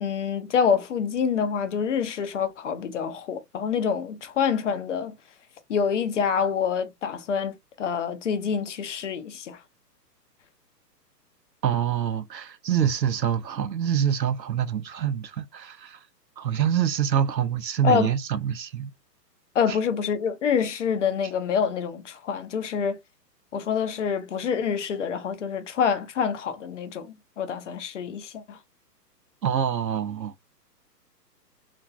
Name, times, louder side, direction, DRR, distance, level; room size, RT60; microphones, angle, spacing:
voice 1, 0.0-5.1 5.7-9.6 17.8-18.1 19.5-23.0 23.5-28.6, left 7 dB, 50° left, 0.6 m, -26 dB
voice 2, 11.6-16.0 16.4-18.9 19.7-19.8 29.4-30.3, right 9 dB, 90° right, 0.6 m, -26 dB
3.0 x 2.5 x 2.3 m
figure-of-eight pair, 125°, 49 cm